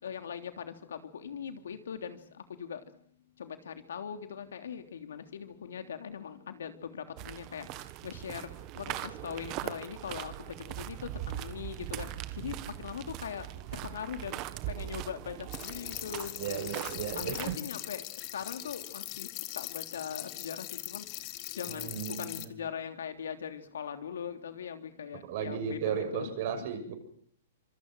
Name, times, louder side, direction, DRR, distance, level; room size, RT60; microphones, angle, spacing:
voice 1, 0.0-2.8 3.4-8.5 8.7-12.1 12.4-16.7 17.1-18.0 18.3-19.3 19.5-21.0 21.6-26.7, left 7 dB, 90° left, 7 dB, 3.2 m, -41 dB
sound 1, 7.2-17.6, right 14 dB, 30° right, 1.4 m, -40 dB
sound 2, 15.5-22.4, left 18 dB, 35° left, 1.5 m, -41 dB
voice 2, 16.4-17.6 21.7-22.5 25.3-26.9, right 8 dB, 45° right, 7 dB, 6.5 m, -35 dB
26.0 x 24.5 x 6.4 m, 0.62 s
hypercardioid pair, 165°, 0 cm